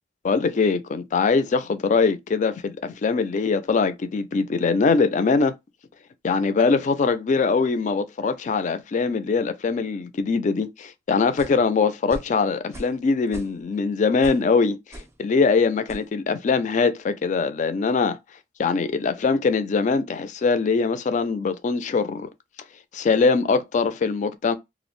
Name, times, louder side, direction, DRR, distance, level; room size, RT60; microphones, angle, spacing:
voice 1, 0.2-5.5 6.2-18.2 18.6-22.3 22.9-24.5, left 4 dB, 40° left, 0.3 m, -22 dB
sound 1, 11.4-11.6 12.1-12.3 12.7-13.0 13.3-13.8 14.2-14.5 14.9-15.2 15.9-16.1, right 1 dB, 15° right, 0.5 m, -39 dB
2.4 x 2.0 x 3.0 m
head